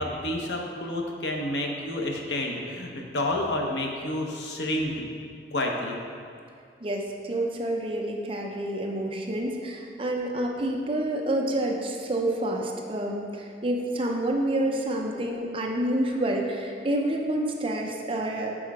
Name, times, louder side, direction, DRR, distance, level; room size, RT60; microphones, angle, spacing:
voice 1, 0.0-5.1 5.5-6.0, left 1 dB, 75° left, 1 dB, 0.8 m, -29 dB
voice 2, 6.8-18.5, right 1 dB, 30° right, 1 dB, 0.6 m, -28 dB
6.2 x 4.5 x 4.8 m, 2.3 s
head